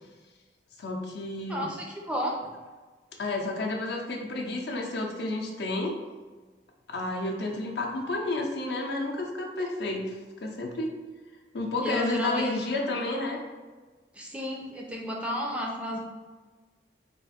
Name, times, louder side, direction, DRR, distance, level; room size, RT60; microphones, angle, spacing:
voice 1, 0.8-1.7 3.2-6.0 6.9-10.9 11.5-13.4, left 2 dB, 60° left, 1 dB, 0.6 m, -31 dB
voice 2, 1.5-2.3 11.8-12.7 14.1-16.0, equal, 5° right, -1 dB, 0.4 m, -32 dB
3.5 x 2.4 x 4.1 m, 1.3 s
head